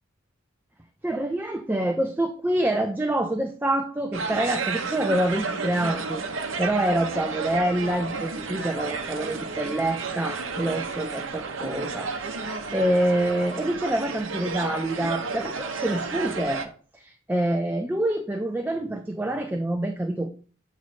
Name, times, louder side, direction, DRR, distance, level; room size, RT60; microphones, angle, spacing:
voice 1, 1.0-16.6 16.9-20.3, right 1 dB, 10° right, 5 dB, 0.4 m, -26 dB
sound 1, 4.1-16.7, right 4 dB, 65° right, 0.8 m, -32 dB
7.4 x 3.1 x 4.1 m, 0.40 s
head